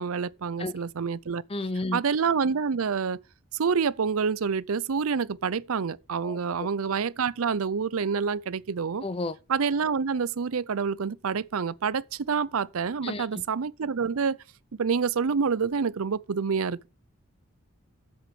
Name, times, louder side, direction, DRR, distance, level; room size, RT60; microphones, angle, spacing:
voice 1, 0.0-1.4 1.9-3.2 3.5-9.0 9.5-14.4 14.8-16.9, right 6 dB, 75° right, 0.5 m, -27 dB
voice 2, 1.5-2.0 6.2-6.7 9.0-9.4 13.0-13.4, left 2 dB, 25° left, 0.6 m, -32 dB
7.9 x 6.5 x 7.8 m
head